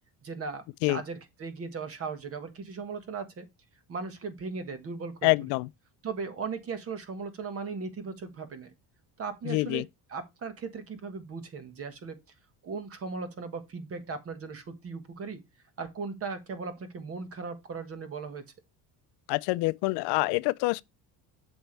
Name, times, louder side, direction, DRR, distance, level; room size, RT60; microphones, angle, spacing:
voice 1, 0.2-3.5 3.9-5.3 6.0-8.7 9.2-9.8 10.1-12.2 12.6-15.4 15.8-18.5, right 4 dB, 35° right, 1.5 m, -37 dB
voice 2, 5.2-5.7 9.5-9.8 19.3-20.8, left 23 dB, 75° left, 0.5 m, -26 dB
7.9 x 6.4 x 3.3 m
cardioid pair, 145°, 41 cm